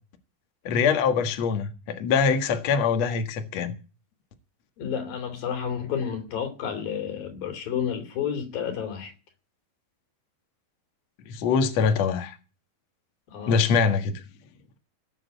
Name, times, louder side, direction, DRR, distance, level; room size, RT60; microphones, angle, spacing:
voice 1, 0.7-3.7 11.3-12.4 13.5-14.1, left 6 dB, 55° left, 2.6 m, -23 dB
voice 2, 4.8-9.1 13.3-13.6, left 8 dB, 85° left, 4.9 m, -31 dB
19.0 x 6.9 x 8.2 m
omnidirectional pair, 3.9 m